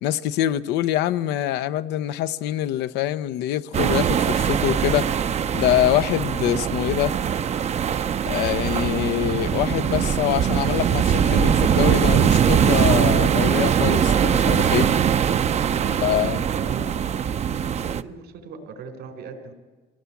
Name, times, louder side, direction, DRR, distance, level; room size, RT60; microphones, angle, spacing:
voice 1, 0.0-5.1 5.5-7.1 8.3-14.9 16.0-16.4, left 13 dB, 90° left, 0.7 m, -24 dB
sound 1, 3.7-18.0, right 8 dB, 40° right, 0.6 m, -21 dB
voice 2, 15.8-16.9 17.4-19.5, right 5 dB, 80° right, 4.0 m, -38 dB
24.5 x 17.5 x 8.4 m
cardioid pair, 110°, 17 cm